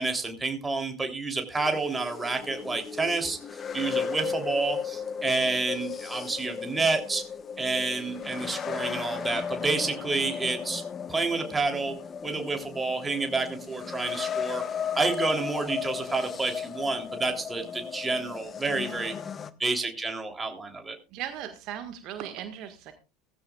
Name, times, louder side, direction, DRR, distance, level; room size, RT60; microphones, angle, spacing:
voice 1, 0.0-7.2 7.6-10.8 11.1-11.9 12.2-14.6 14.9-19.1 19.6-20.9, right 3 dB, 15° right, 4 dB, 3.3 m, -29 dB
sound 1, 1.5-19.5, left 7 dB, 30° left, 1.1 m, -35 dB
voice 2, 21.1-22.9, right 10 dB, 50° right, 7 dB, 1.6 m, -37 dB
17.0 x 15.0 x 2.4 m, 0.31 s
figure-of-eight pair, 70°, 0 cm